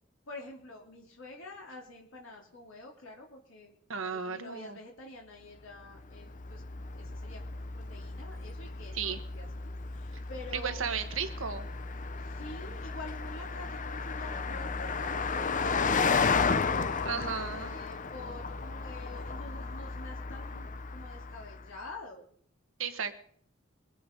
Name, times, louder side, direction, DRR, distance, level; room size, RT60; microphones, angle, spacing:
voice 1, 0.3-3.7 4.1-6.6 6.9-11.0 12.2-22.3, left 2 dB, 80° left, -2 dB, 2.9 m, -47 dB
voice 2, 3.9-4.8 8.9-9.2 10.1-10.2 10.5-11.7 17.0-17.8 22.8-23.1, right 6 dB, 75° right, 8 dB, 1.4 m, -34 dB
Car passing by, 5.9-21.7, left 4 dB, 40° left, 0.7 m, -34 dB
22.5 x 8.5 x 5.2 m, 0.62 s
head